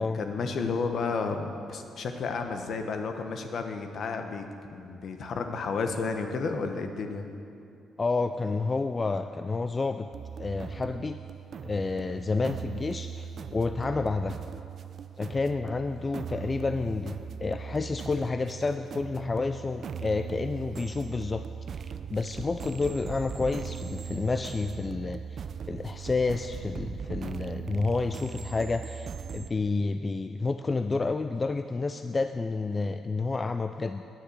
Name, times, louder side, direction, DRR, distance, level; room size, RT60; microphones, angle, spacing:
voice 1, 0.0-4.4 4.7-7.2, left 4 dB, 60° left, 6 dB, 1.0 m, -32 dB
voice 2, 8.0-10.1 10.4-11.2 11.6-14.4 15.2-21.4 21.7-34.0, left 3 dB, 30° left, 9 dB, 0.3 m, -30 dB
sound 1, 10.1-29.5, right 7 dB, 55° right, 0.4 m, -39 dB
9.5 x 6.9 x 7.9 m, 2.6 s
cardioid pair, 90°, 0 cm